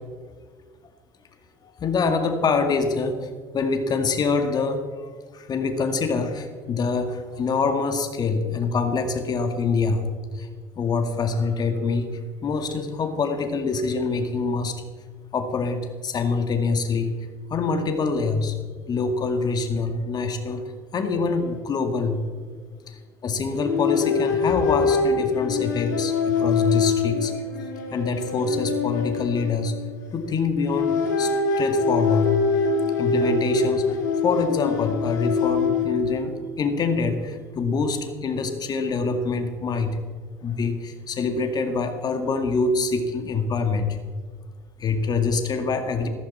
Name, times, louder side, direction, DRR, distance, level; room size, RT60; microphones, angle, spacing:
voice 1, 1.6-3.3 3.5-10.1 10.3-10.5 10.8-12.1 12.4-14.8 15.3-17.1 17.5-18.6 18.9-20.6 20.9-22.3 23.2-27.3 27.9-29.8 30.1-31.3 31.6-32.4 33.0-33.8 34.2-40.0 40.4-44.0 44.8-46.1, left 4 dB, 45° left, 6 dB, 2.1 m, -25 dB
sound 1, 21.4-21.6 21.9-22.1 23.6-30.2 30.6-36.3, left 5 dB, 85° left, 1.8 m, -24 dB
15.5 x 14.0 x 4.3 m, 1.5 s
hypercardioid pair, 60°, 10 cm